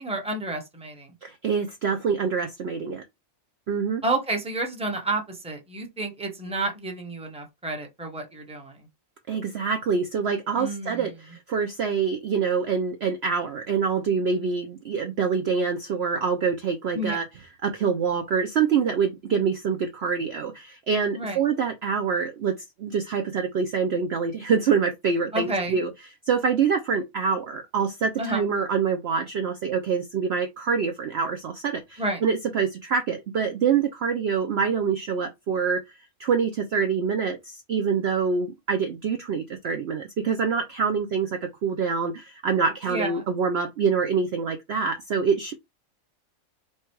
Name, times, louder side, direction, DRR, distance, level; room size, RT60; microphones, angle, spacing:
voice 1, 0.0-1.1 4.0-8.8 10.6-11.1 16.9-17.2 21.1-21.4 25.3-25.8 28.2-28.4 32.0-32.2 42.9-43.2, right 2 dB, 5° right, 0.9 m, -30 dB
voice 2, 1.2-3.0 3.7-4.0 9.3-17.2 17.6-25.9 26.3-35.8 36.2-45.5, right 6 dB, 60° right, 0.7 m, -25 dB
4.4 x 2.3 x 4.5 m
omnidirectional pair, 1.5 m